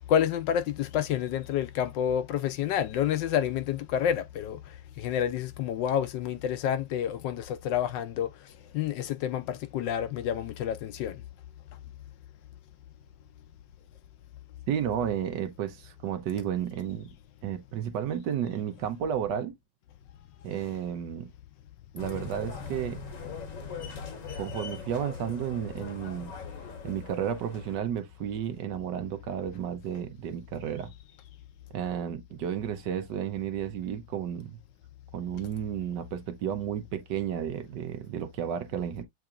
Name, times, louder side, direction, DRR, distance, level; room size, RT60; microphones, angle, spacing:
voice 1, 0.1-4.6 5.0-8.3 8.7-11.2, left 9 dB, 80° left, 1.2 m, -29 dB
voice 2, 14.7-17.1 17.4-19.6 20.4-21.3 21.9-23.0 24.3-26.3 26.8-30.9 31.7-34.6 35.1-39.0, right 9 dB, 70° right, 1.3 m, -32 dB
sound 1, 22.0-27.8, left 5 dB, 50° left, 1.1 m, -40 dB
7.7 x 2.8 x 2.4 m
omnidirectional pair, 2.1 m